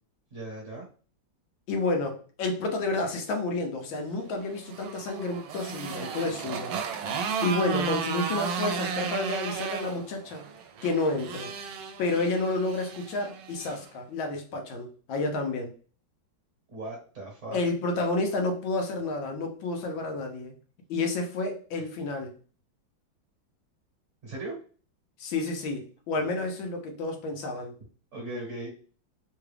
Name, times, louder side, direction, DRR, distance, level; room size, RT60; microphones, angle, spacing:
voice 1, 0.3-0.9 16.7-17.6 24.2-24.5 28.1-28.7, right 2 dB, 45° right, -1 dB, 1.3 m, -38 dB
voice 2, 1.7-6.7 7.4-10.5 10.8-11.5 12.0-15.7 17.5-20.5 20.9-22.3 25.2-27.8, left 2 dB, 80° left, 4 dB, 1.5 m, -30 dB
Motorcycle, 4.4-13.8, right 6 dB, 75° right, 1.3 m, -34 dB
3.6 x 2.3 x 3.2 m, 0.39 s
omnidirectional pair, 2.1 m